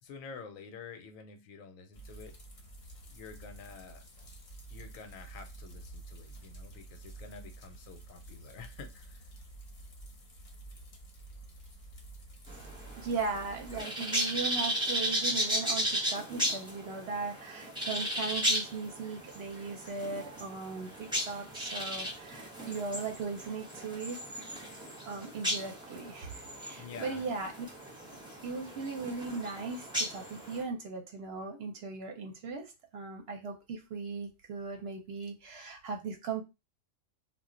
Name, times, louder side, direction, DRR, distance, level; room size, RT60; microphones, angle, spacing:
voice 1, 0.0-2.4 3.0-4.0 4.7-9.2 26.8-27.3, left 5 dB, 85° left, 1.0 m, -48 dB
sound 1, 1.9-13.8, right 2 dB, 45° left, 0.7 m, -49 dB
sound 2, 12.5-30.6, equal, 5° right, 0.6 m, -35 dB
voice 2, 13.0-24.2 25.1-27.5 28.4-36.4, right 4 dB, 60° right, 0.7 m, -38 dB
2.3 x 2.1 x 3.6 m
omnidirectional pair, 1.4 m